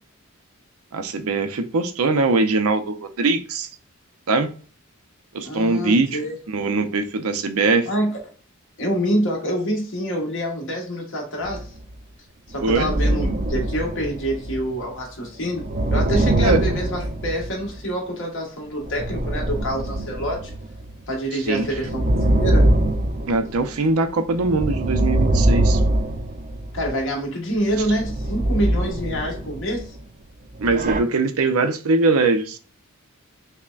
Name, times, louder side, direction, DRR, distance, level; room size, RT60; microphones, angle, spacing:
voice 1, 0.9-3.7 4.3-4.5 5.3-6.2 6.5-7.9 12.6-12.9 16.4-16.6 21.5-21.7 23.3-25.8 30.6-32.6, right 3 dB, 85° right, 8 dB, 0.6 m, -21 dB
voice 2, 5.4-6.3 7.9-8.1 8.8-11.7 12.5-15.6 15.9-20.5 21.1-22.7 26.7-29.9, equal, 60° left, 0 dB, 1.4 m, -26 dB
sound 1, 11.4-11.8 12.5-14.8 15.4-17.8 18.8-20.9 21.5-23.9 24.3-27.0 27.7-30.0 30.5-31.0, right 1 dB, 40° right, 0.5 m, -23 dB
5.6 x 2.1 x 2.4 m, 0.40 s
head